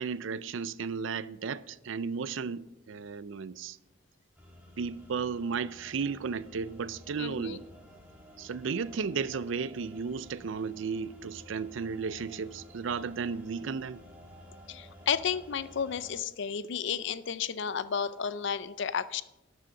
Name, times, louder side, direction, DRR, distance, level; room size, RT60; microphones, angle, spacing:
voice 1, 0.0-3.8 4.8-7.6 8.4-14.0, right 5 dB, 65° right, 0.5 m, -34 dB
sound 1, 4.4-16.2, left 1 dB, 5° right, 2.0 m, -53 dB
voice 2, 7.2-7.6 14.7-19.2, left 7 dB, 60° left, 0.5 m, -32 dB
12.0 x 6.4 x 6.4 m
head